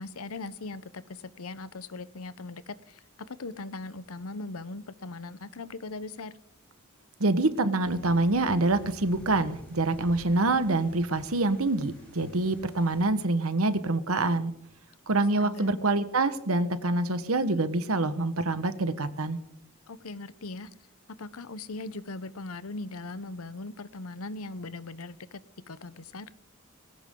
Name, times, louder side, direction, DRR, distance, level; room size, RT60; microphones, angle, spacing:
voice 1, 0.0-3.0 3.3-6.3 15.4-15.7 19.9-20.7 21.1-25.4 25.7-26.3, left 3 dB, 90° left, 16 dB, 0.9 m, -39 dB
voice 2, 7.2-14.5 15.1-19.4, right 2 dB, 80° right, 11 dB, 1.4 m, -26 dB
sound 1, 7.8-13.0, equal, 5° left, 7.3 m, -50 dB
19.5 x 17.0 x 3.8 m, 0.72 s
head